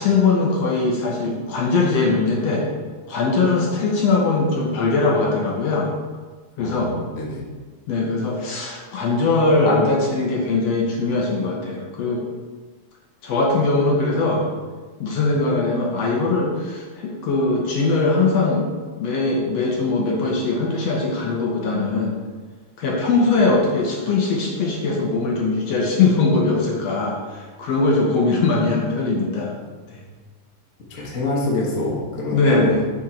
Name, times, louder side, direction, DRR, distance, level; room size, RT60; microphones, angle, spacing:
voice 1, 0.0-2.6 3.1-5.9 6.6-6.9 7.9-12.2 13.2-14.4 15.0-18.6 19.0-22.2 22.8-29.5 29.9-30.0 31.0-31.1 32.3-32.8, left 3 dB, 65° left, -2 dB, 1.9 m, -21 dB
voice 2, 6.6-7.4 23.4-23.5 30.9-32.8, left 2 dB, 45° left, -3 dB, 1.0 m, -26 dB
7.2 x 5.4 x 4.4 m, 1.4 s
omnidirectional pair, 3.6 m